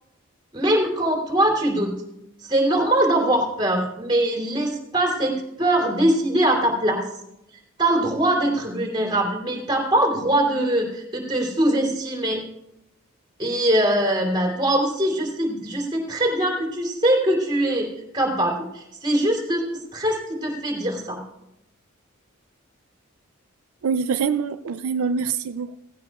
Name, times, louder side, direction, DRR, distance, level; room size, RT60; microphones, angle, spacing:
voice 1, 0.5-2.0 2.4-7.1 7.8-12.4 13.4-17.9 18.1-21.2, right 1 dB, 20° right, -2 dB, 3.1 m, -22 dB
voice 2, 23.8-25.8, right 6 dB, 80° right, 11 dB, 0.4 m, -25 dB
17.0 x 15.5 x 2.4 m, 0.87 s
head